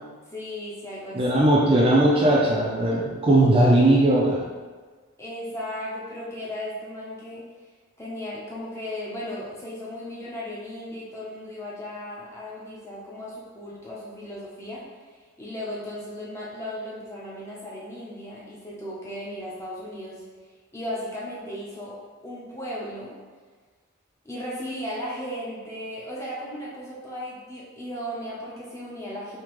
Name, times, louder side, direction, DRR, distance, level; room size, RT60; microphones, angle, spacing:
voice 1, 0.3-1.4 5.2-7.4 8.0-20.2 20.7-22.0 22.2-23.2 24.2-29.4, left 1 dB, 15° left, -6 dB, 0.6 m, -36 dB
voice 2, 1.1-4.4, right 1 dB, 25° right, -4 dB, 0.4 m, -19 dB
3.6 x 2.8 x 3.1 m, 1.4 s
head